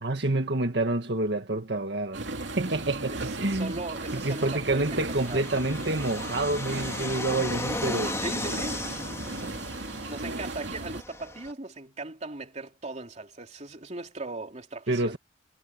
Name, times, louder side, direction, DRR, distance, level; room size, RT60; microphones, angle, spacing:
voice 1, 0.0-2.3 2.5-3.7 4.1-8.2 14.9-15.2, right 2 dB, 65° right, 1.9 m, -28 dB
sound 1, 2.1-11.0, right 2 dB, 80° right, 2.8 m, -36 dB
Fixed-wing aircraft airplane, 2.3-11.5, left 2 dB, 15° left, 2.6 m, -37 dB
voice 2, 3.1-5.4 8.2-8.8 10.1-15.2, right 2 dB, 40° right, 3.1 m, -38 dB
head